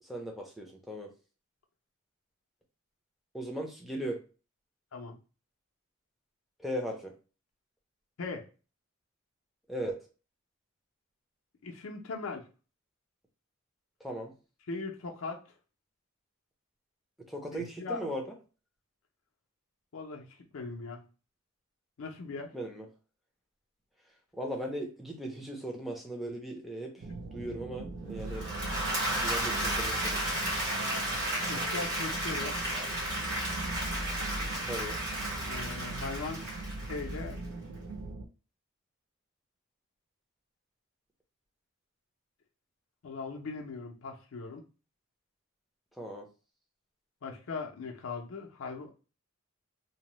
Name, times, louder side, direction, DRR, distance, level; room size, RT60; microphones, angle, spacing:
voice 1, 0.0-1.1 3.3-4.2 6.6-7.1 9.7-10.0 14.0-14.3 17.3-18.3 22.5-22.9 24.3-27.1 27.3-28.5 29.2-30.2 34.6-35.0 46.0-46.3, right 1 dB, ahead, 0.5 m, -38 dB
voice 2, 11.6-12.5 14.7-15.4 17.5-18.0 19.9-21.0 22.0-22.5 31.5-32.6 35.5-36.4 36.9-37.4 43.0-44.6 47.2-48.9, left 4 dB, 70° left, 0.5 m, -39 dB
sound 1, 27.0-38.3, right 2 dB, 75° right, 0.4 m, -40 dB
Applause / Crowd, 28.2-37.4, right 1 dB, 55° right, 1.4 m, -33 dB
2.7 x 2.0 x 3.0 m
head